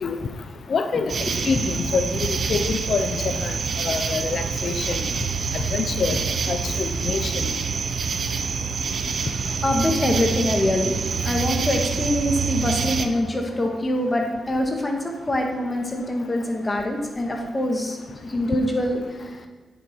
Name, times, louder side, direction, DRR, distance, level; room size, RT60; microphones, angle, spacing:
voice 1, 0.7-1.1 1.5-3.2 3.4-3.5 3.8-5.0 5.7-6.2 6.5-7.5, left 5 dB, 60° left, 8 dB, 0.8 m, -25 dB
sound 1, 1.1-13.1, right 5 dB, 60° right, 0.9 m, -26 dB
voice 2, 9.1-11.0 11.2-18.0 18.2-19.0, left 1 dB, 25° left, 1 dB, 2.1 m, -24 dB
9.8 x 8.8 x 4.6 m, 1.3 s
cardioid pair, 90°, 0 cm